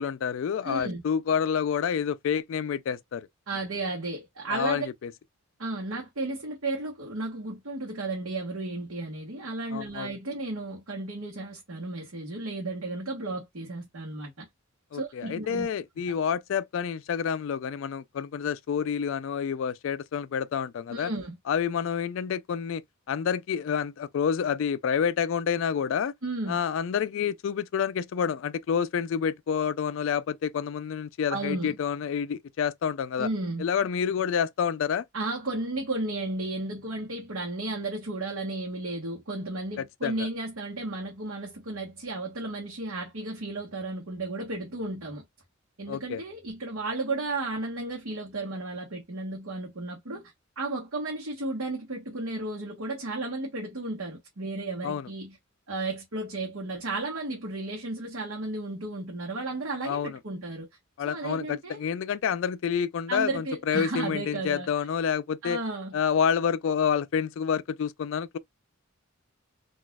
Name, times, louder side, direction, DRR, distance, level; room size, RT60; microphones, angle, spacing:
voice 1, 0.0-3.3 4.5-5.1 9.7-10.1 14.9-21.1 21.5-22.8 23.1-26.1 26.5-33.3 33.6-35.0 39.8-40.3 45.9-46.2 54.8-55.1 59.9-60.2 61.0-65.6 65.9-68.4, left 7 dB, 65° left, 0.3 m, -28 dB
voice 2, 0.6-1.0 3.5-4.9 5.6-14.5 14.9-15.7 20.9-21.4 26.2-26.6 31.3-31.8 33.2-33.7 35.1-45.2 45.8-55.4 55.7-60.7 61.0-61.8 63.1-64.7 65.4-66.0, right 2 dB, 75° right, 1.1 m, -33 dB
4.0 x 2.4 x 2.3 m
head